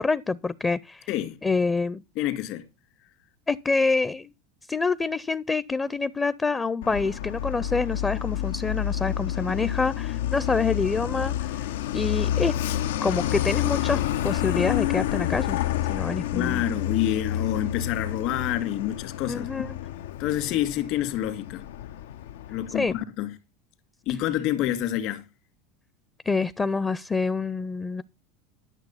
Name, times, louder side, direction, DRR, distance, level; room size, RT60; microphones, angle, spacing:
voice 1, 0.0-1.1 1.4-2.0 3.5-4.3 4.7-11.7 11.9-12.5 13.0-15.6 15.9-16.6 19.3-19.8 22.7-22.9 26.3-28.0, left 4 dB, 15° left, 0.5 m, -26 dB
voice 2, 2.2-2.6 16.3-19.6 20.2-21.6 22.5-23.4 24.1-25.3, left 12 dB, 60° left, 2.0 m, -28 dB
Truck, 6.8-23.0, left 12 dB, 85° left, 0.5 m, -29 dB
11.5 x 6.7 x 5.6 m
supercardioid pair, 115°, 0 cm